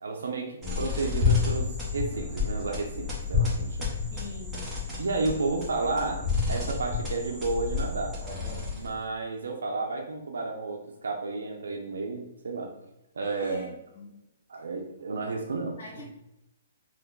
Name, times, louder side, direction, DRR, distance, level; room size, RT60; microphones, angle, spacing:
voice 1, 0.0-3.8 5.0-8.2 8.7-12.7 13.1-13.7 14.5-15.8, right 3 dB, 90° right, 1 dB, 0.5 m, -32 dB
sound 1, 0.6-9.0, left 5 dB, 10° right, 0.9 m, -30 dB
voice 2, 4.1-4.8 13.2-14.2 15.8-16.1, left 2 dB, 70° left, -2 dB, 1.1 m, -44 dB
2.9 x 2.2 x 3.7 m, 0.85 s
hypercardioid pair, 155°, 0 cm